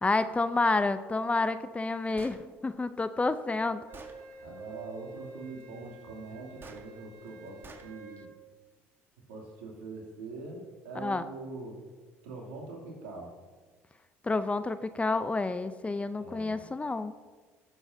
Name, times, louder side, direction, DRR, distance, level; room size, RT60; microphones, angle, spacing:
voice 1, 0.0-3.8 11.0-11.2 14.2-17.1, left 3 dB, 20° left, 12 dB, 0.6 m, -29 dB
Gunshot gunfire, 2.2-2.4 3.3-3.4 3.9-4.2 6.6-6.8 7.6-7.9, right 3 dB, 35° right, 1.4 m, -47 dB
Wind instrument woodwind instrument, 3.9-8.3, right 3 dB, 60° right, 1.6 m, -49 dB
voice 2, 4.4-8.3 9.3-11.8 12.2-13.3 16.2-16.6, right 3 dB, 80° right, -2 dB, 2.8 m, -43 dB
19.0 x 8.1 x 2.7 m, 1.4 s
hypercardioid pair, 65°, 7 cm